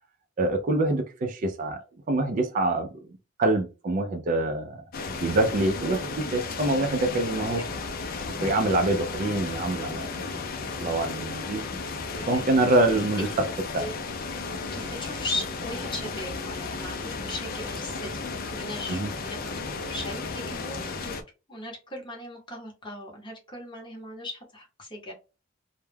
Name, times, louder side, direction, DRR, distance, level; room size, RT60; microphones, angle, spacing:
voice 1, 0.4-3.0 3.4-4.8 5.2-7.6 8.4-10.3 10.8-11.6 12.3-13.5 13.7-13.9 18.9-19.1, right 2 dB, 40° right, 0.3 m, -25 dB
sound 1, 4.9-21.2, left 4 dB, 45° left, 0.4 m, -34 dB
voice 2, 14.7-21.2 21.5-25.1, left 1 dB, 20° left, 0.8 m, -38 dB
2.2 x 2.0 x 3.2 m
head